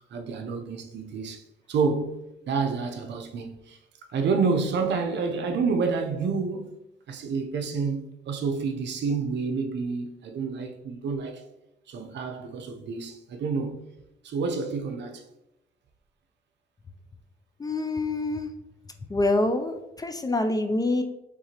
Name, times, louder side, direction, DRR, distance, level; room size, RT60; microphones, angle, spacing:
voice 1, 0.1-1.4 1.7-2.2 2.5-3.8 4.1-6.8 7.1-11.4 11.9-13.9 14.2-15.2, right 4 dB, 65° right, 0.7 m, -29 dB
voice 2, 17.6-18.5 19.1-21.0, left 2 dB, 20° left, 0.4 m, -26 dB
4.6 x 3.7 x 2.9 m
cardioid pair, 90°, 20 cm